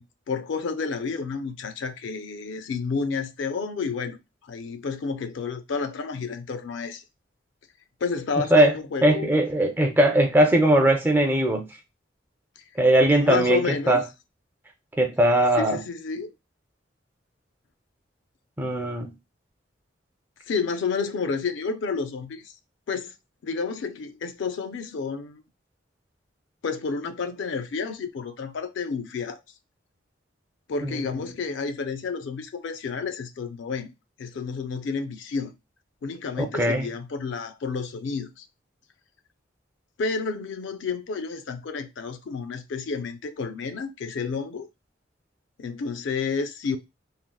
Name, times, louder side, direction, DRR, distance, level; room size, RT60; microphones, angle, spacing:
voice 1, 0.0-4.2 4.4-7.0 8.0-9.3 13.2-14.0 15.5-16.3 20.5-22.5 22.9-23.1 23.4-25.4 26.6-29.4 30.7-33.9 34.2-35.5 36.0-38.5 40.0-44.7 45.6-46.8, left 5 dB, 75° left, 0.4 m, -30 dB
voice 2, 9.0-11.6 12.8-14.0 15.0-15.8 18.6-19.1 30.8-31.0 36.4-36.9, right 1 dB, 10° right, 0.4 m, -20 dB
3.5 x 2.1 x 2.2 m
head